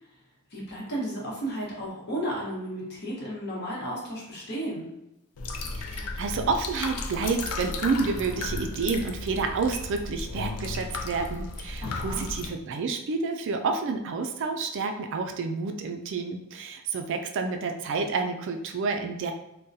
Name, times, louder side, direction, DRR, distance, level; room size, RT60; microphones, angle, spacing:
voice 1, 0.5-4.9 11.8-12.3, right 1 dB, 50° left, -4 dB, 1.1 m, -33 dB
sound 1, 5.4-12.5, left 3 dB, 80° left, 0.4 m, -34 dB
voice 2, 5.8-19.3, right 4 dB, 55° right, 5 dB, 0.3 m, -29 dB
3.7 x 2.2 x 2.6 m, 0.91 s
head